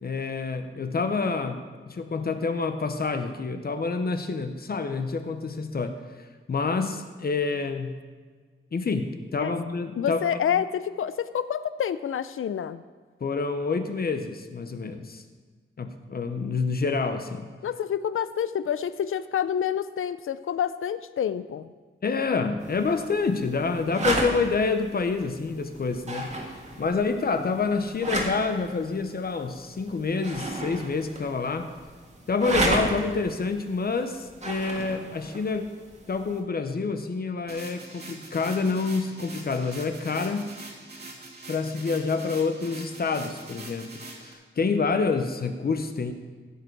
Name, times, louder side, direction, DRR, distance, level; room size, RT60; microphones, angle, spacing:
voice 1, 0.0-6.0 6.5-8.0 8.7-10.2 13.2-15.2 15.8-17.5 22.0-26.3 26.8-31.7 32.3-35.7 36.1-40.5 41.5-43.9 44.2-46.1, left 4 dB, 50° left, 8 dB, 0.8 m, -27 dB
voice 2, 9.9-12.8 17.6-21.7, left 9 dB, 90° left, 14 dB, 0.5 m, -28 dB
sound 1, 22.6-36.4, right 1 dB, 35° right, 1.7 m, -34 dB
sound 2, 37.5-44.3, right 2 dB, 50° right, 1.9 m, -43 dB
15.5 x 7.9 x 4.6 m, 1.5 s
wide cardioid pair, 160°, 21 cm